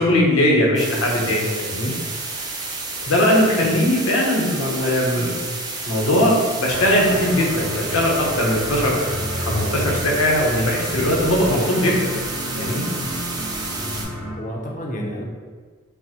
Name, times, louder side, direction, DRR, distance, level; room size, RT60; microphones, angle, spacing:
voice 1, 0.0-1.9 3.1-5.3 5.9-12.1 12.6-12.8, left 1 dB, 85° left, -2 dB, 0.8 m, -20 dB
sound 1, 0.8-14.0, right 3 dB, 20° right, 0.4 m, -30 dB
sound 2, 6.7-14.3, equal, 35° right, 1.0 m, -30 dB
voice 2, 14.1-15.2, equal, 40° left, -1 dB, 0.5 m, -31 dB
5.3 x 2.1 x 2.8 m, 1.5 s
head